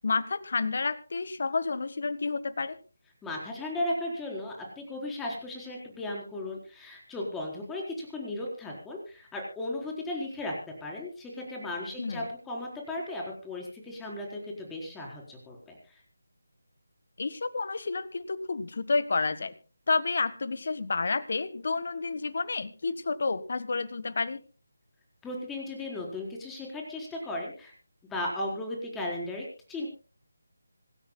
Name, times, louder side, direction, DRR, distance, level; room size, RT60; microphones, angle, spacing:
voice 1, 0.0-2.8 12.0-12.3 17.2-19.5 19.9-24.4, left 4 dB, 55° left, 15 dB, 1.5 m, -30 dB
voice 2, 3.2-10.5 10.8-16.0 25.2-27.7 28.1-29.9, left 1 dB, 5° left, -1 dB, 4.3 m, -36 dB
26.0 x 13.5 x 2.3 m, 0.35 s
figure-of-eight pair, 160°, 0 cm